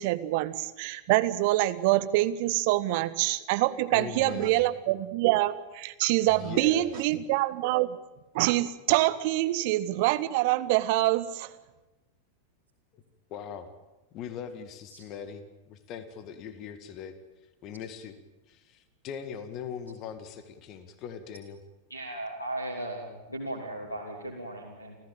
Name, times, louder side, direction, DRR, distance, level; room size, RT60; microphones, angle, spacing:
voice 1, 0.0-8.0 8.3-11.5, right 17 dB, 50° right, 13 dB, 1.3 m, -25 dB
voice 2, 3.9-4.6 6.2-7.0 12.9-13.0 13.3-13.7 14.1-17.1 17.6-18.2 18.5-21.6, left 7 dB, 35° left, 10 dB, 2.1 m, -40 dB
voice 3, 21.9-25.0, right 1 dB, 85° left, 1 dB, 3.1 m, -37 dB
29.0 x 15.0 x 9.0 m, 1.1 s
figure-of-eight pair, 90°, 0 cm